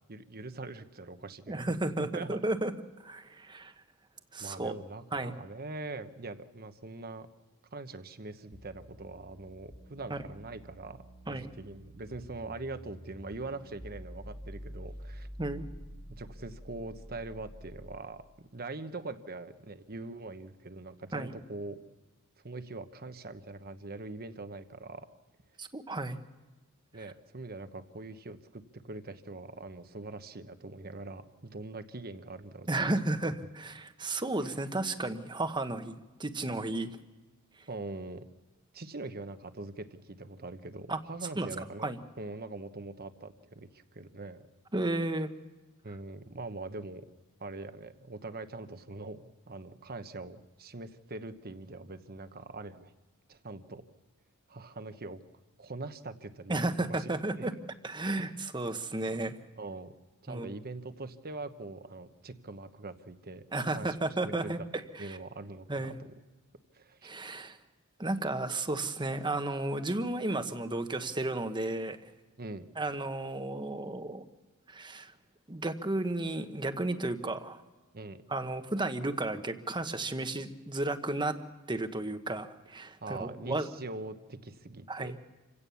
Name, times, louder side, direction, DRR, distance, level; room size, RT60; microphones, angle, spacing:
voice 1, 0.1-1.6 2.0-2.4 4.4-7.3 7.7-11.0 11.3-15.3 16.2-21.8 22.4-25.1 26.9-32.9 37.7-38.2 38.7-41.9 42.2-44.4 45.8-47.1 47.4-52.9 53.3-53.8 54.5-55.2 55.6-56.6 56.9-57.1 57.4-57.5 58.2-58.3 59.6-59.9 60.2-63.4 63.7-64.0 64.2-64.5 65.0-65.9 66.7-67.1 72.4-72.7 77.9-78.2 83.0-85.1, right 2 dB, 45° right, 9 dB, 1.1 m, -42 dB
voice 2, 1.5-2.7 3.0-3.7 4.3-4.7 5.1-5.3 10.1-10.2 11.3-11.5 15.4-15.6 21.1-21.4 25.6-26.2 32.7-36.9 40.9-41.0 41.3-41.5 41.8-42.0 44.7-45.3 56.5-57.5 57.8-59.4 60.3-60.5 63.5-65.2 65.7-66.0 67.0-67.6 68.0-72.0 72.8-74.2 74.7-75.1 75.5-77.6 78.3-81.4 81.7-83.7 84.9-85.2, right 2 dB, 20° right, 8 dB, 1.2 m, -33 dB
sound 1, 8.5-18.1, equal, 30° left, 2.4 m, -48 dB
27.5 x 17.0 x 7.0 m, 1.2 s
head